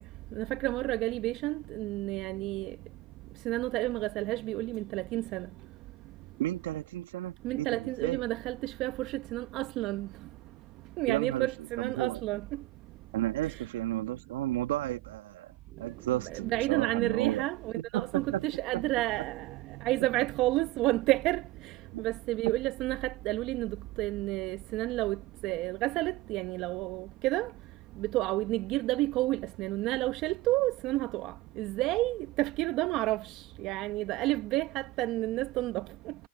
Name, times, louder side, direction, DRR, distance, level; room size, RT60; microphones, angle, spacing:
voice 1, 0.3-2.8 3.4-5.5 7.4-10.1 11.0-12.6 13.4-13.6 15.8-27.5 28.0-36.1, right 18 dB, 45° right, 1.1 m, -31 dB
voice 2, 6.4-8.2 11.1-11.5 11.8-12.2 13.1-15.5 15.8-17.4 17.8-18.5 18.7-18.8 21.9-22.1, right 15 dB, 70° right, 1.9 m, -33 dB
hypercardioid pair, 110°, 0 cm